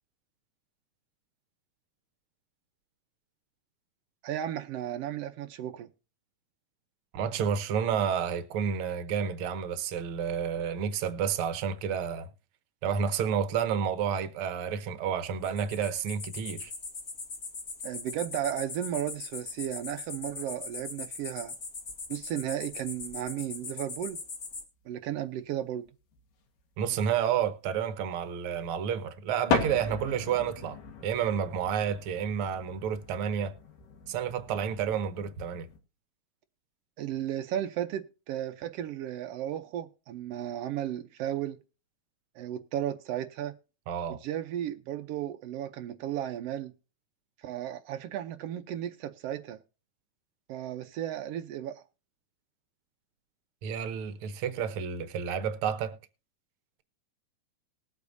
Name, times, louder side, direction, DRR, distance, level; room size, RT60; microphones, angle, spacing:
voice 1, 4.2-5.9 17.8-21.5 22.1-24.2 24.9-25.9 37.0-41.6 42.3-43.6 44.1-46.7 47.4-49.6 50.5-51.8, right 11 dB, 90° right, 1.3 m, -34 dB
voice 2, 7.1-12.3 12.8-16.7 26.8-33.5 34.1-35.7 43.9-44.2 53.6-56.0, right 7 dB, 70° right, 1.3 m, -30 dB
sound 1, 15.4-24.6, left 4 dB, 35° left, 1.9 m, -40 dB
sound 2, 18.7-19.2 19.5-19.9 20.9-21.0 21.2-21.3 21.8-21.9 22.8-22.9 23.1-23.2 24.0-24.1 24.3-24.4 24.5-24.6 25.9-26.6 29.5-35.8, left 5 dB, 90° left, 3.1 m, -37 dB
20.0 x 8.4 x 2.6 m
omnidirectional pair, 3.6 m